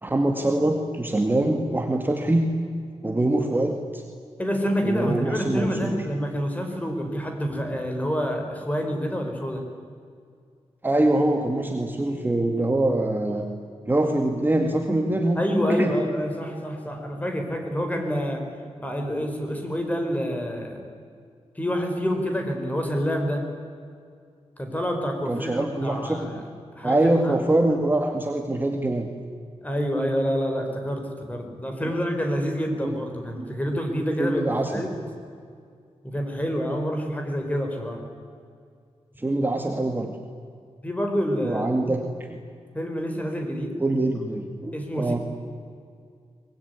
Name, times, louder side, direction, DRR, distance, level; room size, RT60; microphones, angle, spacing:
voice 1, 0.0-2.5 3.0-4.0 4.8-5.9 10.8-13.4 13.9-15.9 25.3-26.3 26.8-29.1 32.8-32.9 33.4-33.5 34.2-34.8 39.2-40.2 41.4-42.4 43.8-45.2, right 1 dB, 20° right, 3 dB, 2.0 m, -24 dB
voice 2, 4.4-9.6 15.3-18.4 18.8-20.8 21.5-23.4 24.6-26.5 26.7-27.4 29.6-34.9 36.0-38.0 40.8-41.6 42.7-43.8 44.7-45.2, equal, 15° left, 3 dB, 4.8 m, -27 dB
24.0 x 21.0 x 9.7 m, 2.2 s
wide cardioid pair, 135°, 11 cm